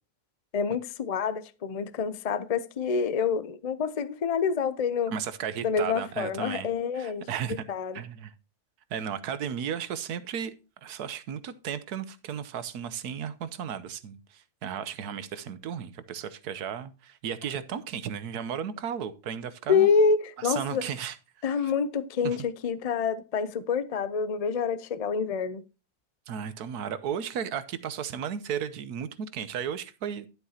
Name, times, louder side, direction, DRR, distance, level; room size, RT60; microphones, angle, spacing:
voice 1, 0.5-5.1 5.6-8.0 19.7-20.8 21.4-25.6, left 6 dB, 55° left, 0.4 m, -27 dB
voice 2, 5.1-6.7 6.9-7.7 7.9-8.3 8.9-10.5 10.8-19.9 20.4-21.2 21.6-21.7 22.2-22.4 26.3-30.3, right 8 dB, 90° right, 1.4 m, -34 dB
12.0 x 8.1 x 2.8 m
omnidirectional pair, 1.6 m